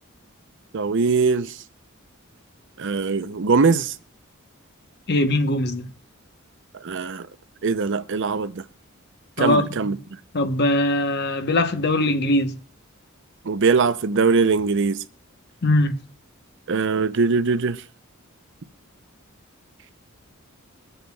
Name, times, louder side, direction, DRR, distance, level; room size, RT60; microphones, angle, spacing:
voice 1, 0.7-1.6 2.8-3.9 6.8-7.3 7.6-8.6 9.4-10.0 13.4-15.0 16.7-17.8, right 4 dB, 60° right, 0.6 m, -21 dB
voice 2, 5.1-5.9 9.4-9.9 10.3-12.6 15.6-16.0, left 1 dB, 50° left, 1.0 m, -21 dB
22.5 x 7.7 x 2.3 m
head